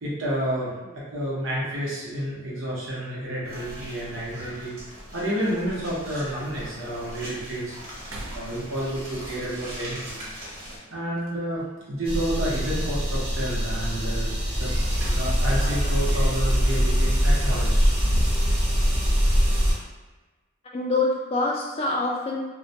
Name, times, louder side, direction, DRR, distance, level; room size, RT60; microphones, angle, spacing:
voice 1, 0.0-4.8 5.1-7.8 8.3-10.3 10.9-14.7 15.0-17.9 18.4-18.5, right 1 dB, 65° right, -6 dB, 0.8 m, -30 dB
sound 1, 2.2-2.3 4.0-4.1 4.5-4.6 4.9-5.5 6.0-6.1 6.7-6.8 7.2-7.5 8.0-9.0 11.1-11.8 14.6-15.6 16.0-16.2 17.5-18.8, equal, 90° right, 0.4 m, -36 dB
sound 2, 3.4-10.8, equal, 50° right, 1.1 m, -40 dB
sound 3, 12.0-19.7, equal, 25° right, 0.6 m, -23 dB
voice 2, 20.7-22.4, left 2 dB, 30° left, -2 dB, 0.3 m, -26 dB
2.2 x 2.1 x 2.6 m, 1.2 s
head